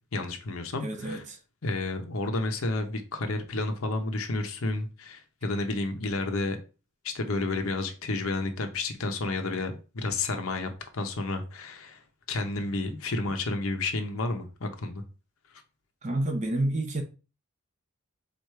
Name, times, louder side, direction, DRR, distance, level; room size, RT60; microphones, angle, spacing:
voice 1, 0.1-1.2 1.6-6.6 7.0-12.0 12.3-15.0, left 2 dB, 70° left, 0.8 m, -31 dB
voice 2, 0.8-1.4 16.0-17.0, right 1 dB, 30° right, 0.7 m, -29 dB
4.7 x 2.5 x 4.5 m
head